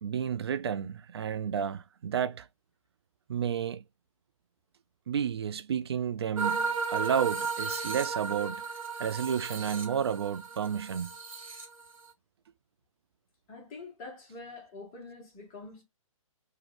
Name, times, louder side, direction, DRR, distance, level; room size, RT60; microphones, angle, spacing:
voice 1, 0.0-2.5 3.3-3.8 5.1-8.6 9.0-11.1, right 8 dB, 45° right, 0.4 m, -31 dB
sound 1, 6.4-12.1, right 5 dB, 75° right, 0.9 m, -34 dB
voice 2, 13.5-15.8, left 3 dB, 25° left, 1.1 m, -45 dB
3.0 x 2.3 x 3.1 m
figure-of-eight pair, 125°, 18 cm